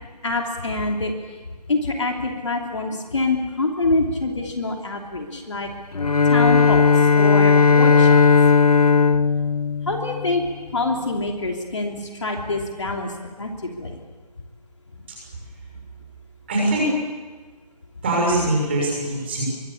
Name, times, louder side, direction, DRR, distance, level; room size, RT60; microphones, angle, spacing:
voice 1, 0.2-1.1 1.7-5.7 6.3-8.3 9.9-10.4 10.7-13.1 13.4-14.0, left 2 dB, 45° left, 2 dB, 3.0 m, -25 dB
Bowed string instrument, 5.9-10.5, left 5 dB, 60° left, 1.2 m, -16 dB
voice 2, 16.5-16.9 18.0-19.4, right 1 dB, 15° right, -2 dB, 6.6 m, -22 dB
27.5 x 23.5 x 8.4 m, 1.4 s
figure-of-eight pair, 180°, 21 cm